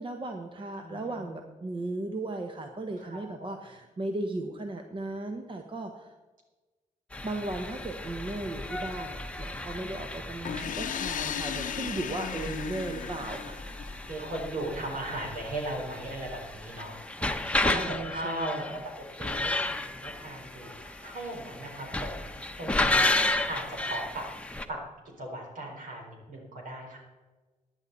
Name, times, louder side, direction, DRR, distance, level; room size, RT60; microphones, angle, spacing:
voice 1, 0.0-6.1 7.2-13.6 17.4-18.8, right 2 dB, 40° right, 4 dB, 1.1 m, -36 dB
voice 2, 0.8-1.3 3.0-3.5 9.8-10.0 14.1-23.1 23.5-24.3 24.7-24.8 25.2-27.0, right 1 dB, 80° right, 0 dB, 4.2 m, -38 dB
sound 1, 7.1-24.6, left 2 dB, 10° left, 0.9 m, -33 dB
sound 2, 10.4-14.2, left 9 dB, 75° left, 0.6 m, -36 dB
15.5 x 10.0 x 4.1 m, 1.2 s
cardioid pair, 90°, 14 cm